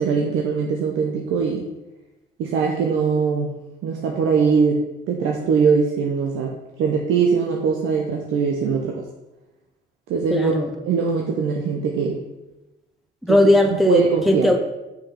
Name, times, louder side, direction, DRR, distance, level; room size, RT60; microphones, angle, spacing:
voice 1, 0.0-1.6 2.4-3.6 3.8-9.0 10.1-10.5 10.8-12.2 13.3-13.4 13.9-14.5, right 5 dB, 90° right, 0 dB, 0.9 m, -21 dB
voice 2, 10.3-10.7 13.2-14.6, left 1 dB, ahead, 4 dB, 0.7 m, -18 dB
5.8 x 5.2 x 5.8 m, 1.0 s
cardioid pair, 90°, 20 cm